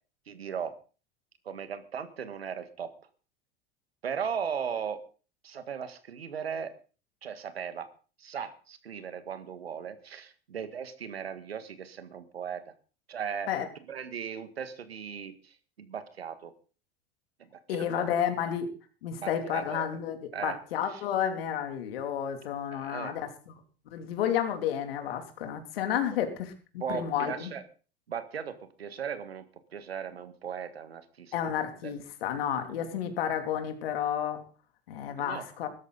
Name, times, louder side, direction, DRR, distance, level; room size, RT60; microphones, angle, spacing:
voice 1, 0.3-0.7 1.4-2.9 4.0-5.0 5.4-6.7 7.2-7.9 8.2-12.6 13.1-13.5 13.9-16.5 17.9-18.0 19.2-19.9 20.3-20.6 22.7-23.1 26.8-27.6 28.1-29.4 29.7-31.3 31.8-31.9 32.7-32.8 35.2-35.4, right 7 dB, 90° right, 11 dB, 1.7 m, -37 dB
voice 2, 17.7-18.7 19.0-20.2 20.4-23.6 23.9-27.5 31.3-34.4 34.9-35.7, left 9 dB, 75° left, 6 dB, 2.9 m, -31 dB
16.5 x 13.0 x 4.0 m, 0.37 s
hypercardioid pair, 80°, 30 cm